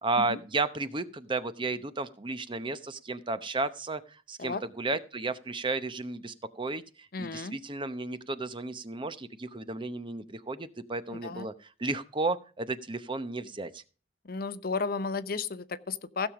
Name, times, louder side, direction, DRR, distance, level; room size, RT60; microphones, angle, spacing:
voice 1, 0.0-6.8 7.2-11.5 11.8-13.8, right 3 dB, 25° right, 13 dB, 0.8 m, -33 dB
voice 2, 7.1-7.6 11.1-11.5 14.2-16.3, left 4 dB, 55° left, 14 dB, 0.7 m, -33 dB
16.0 x 7.2 x 4.9 m, 0.36 s
head